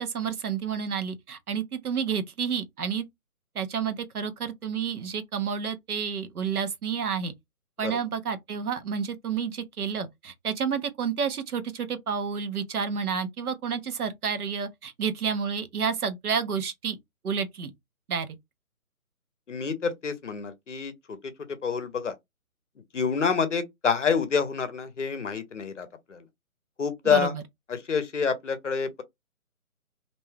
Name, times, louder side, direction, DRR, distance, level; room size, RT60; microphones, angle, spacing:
voice 1, 0.0-3.0 3.5-7.3 7.8-17.0 17.2-17.7 18.1-18.3 27.0-27.4, right 6 dB, 80° right, 0.8 m, -30 dB
voice 2, 19.5-21.2 21.6-22.1 22.9-26.2 26.8-27.3 27.7-29.0, left 6 dB, 55° left, 0.6 m, -27 dB
2.6 x 2.2 x 3.2 m
hypercardioid pair, 170°, 44 cm